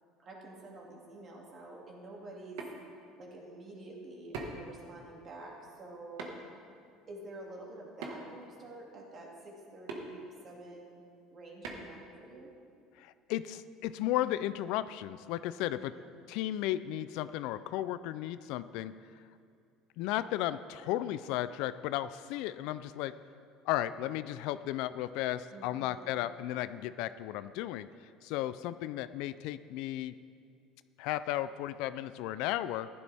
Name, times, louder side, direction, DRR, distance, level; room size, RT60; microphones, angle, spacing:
voice 1, 0.2-2.6 3.2-6.3 7.1-11.0 11.3-12.5 15.7-16.1 25.5-26.3, right 2 dB, 35° right, -2 dB, 2.4 m, -48 dB
sound 1, 2.3-2.7 4.3-4.7 6.2-6.5 8.0-8.4 9.9-10.0 11.6-11.9, right 3 dB, 85° right, 1.5 m, -40 dB
voice 2, 13.0-15.9 16.3-19.0 20.0-23.2 23.7-27.9 28.2-30.2 31.0-32.9, left 13 dB, 70° left, 14 dB, 0.3 m, -34 dB
15.0 x 11.5 x 3.5 m, 2.3 s
cardioid pair, 145°, 0 cm